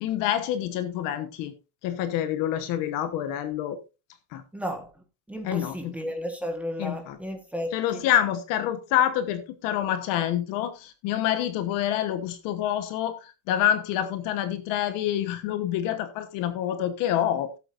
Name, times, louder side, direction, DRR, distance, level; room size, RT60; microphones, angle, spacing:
voice 1, 0.0-1.5 1.8-3.8 4.3-4.4 5.4-5.9 6.8-7.2 7.7-17.5, left 11 dB, 40° left, 1.1 m, -27 dB
voice 2, 4.5-4.9 5.3-8.1, equal, 5° right, 1.4 m, -33 dB
16.0 x 8.2 x 2.6 m
supercardioid pair, 170°, 49 cm